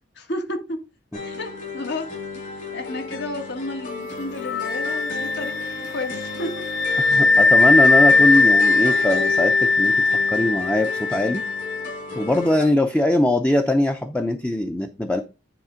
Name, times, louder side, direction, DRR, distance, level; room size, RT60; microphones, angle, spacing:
voice 1, 0.2-0.8 1.2-2.1 2.7-5.6 5.9-6.6 7.1-7.2, left 2 dB, 65° left, 1.7 m, -31 dB
sound 1, 1.1-12.6, left 4 dB, 45° left, 3.7 m, -34 dB
Wind instrument woodwind instrument, 4.4-11.9, left 3 dB, 80° left, 0.7 m, -19 dB
voice 2, 7.0-11.4 12.1-15.2, left 1 dB, 5° left, 0.6 m, -21 dB
10.0 x 3.4 x 5.1 m
head